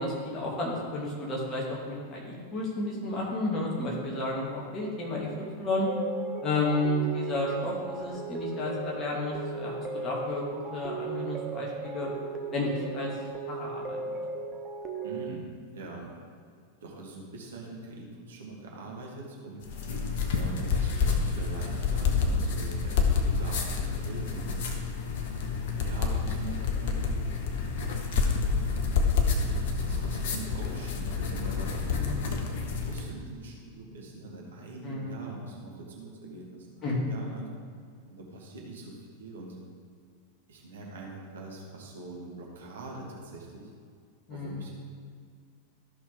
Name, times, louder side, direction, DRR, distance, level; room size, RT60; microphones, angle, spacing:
voice 1, 0.0-5.9 6.4-12.1 12.5-13.1 13.5-14.2 31.9-32.2 34.8-35.2 36.8-36.9 44.3-44.7, left 2 dB, 25° left, -4 dB, 2.4 m, -32 dB
sound 1, 5.9-15.3, right 4 dB, 25° right, 0.9 m, -37 dB
voice 2, 15.0-15.5 15.7-16.1 16.8-19.7 20.3-24.5 25.8-27.3 28.2-28.7 29.1-32.3 32.8-37.5 38.1-39.6 40.5-43.7 44.3-44.7, right 2 dB, 65° right, -2 dB, 1.7 m, -43 dB
sound 2, 19.6-33.1, left 5 dB, 55° left, 1.0 m, -28 dB
13.5 x 6.1 x 3.6 m, 2.1 s
figure-of-eight pair, 90°, 0 cm